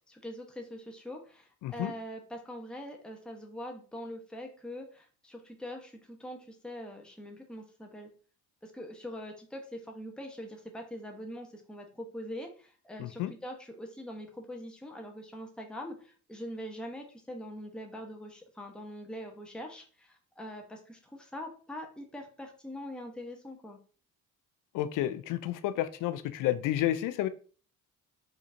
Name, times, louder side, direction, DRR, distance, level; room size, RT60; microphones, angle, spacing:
voice 1, 0.0-8.1 8.6-23.8, equal, ahead, 2 dB, 0.9 m, -43 dB
voice 2, 1.6-1.9 13.0-13.3 24.7-27.3, left 13 dB, 45° left, 13 dB, 0.5 m, -30 dB
4.8 x 2.8 x 2.6 m, 0.40 s
figure-of-eight pair, 45°, 45 cm